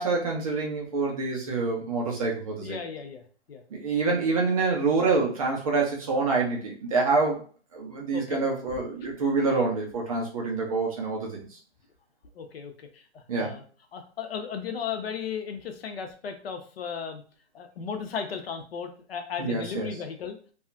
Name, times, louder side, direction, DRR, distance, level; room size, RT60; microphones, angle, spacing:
voice 1, 0.0-2.8 3.7-7.4 7.7-11.5 13.3-13.5 19.4-19.9, right 4 dB, 30° right, 0 dB, 0.5 m, -26 dB
voice 2, 2.6-3.2 3.5-3.6 8.1-8.4 9.0-9.1 12.4-13.6 13.9-17.2 17.5-20.4, left 6 dB, 55° left, 6 dB, 0.6 m, -35 dB
2.7 x 2.3 x 2.5 m, 0.41 s
hypercardioid pair, 150°, 35 cm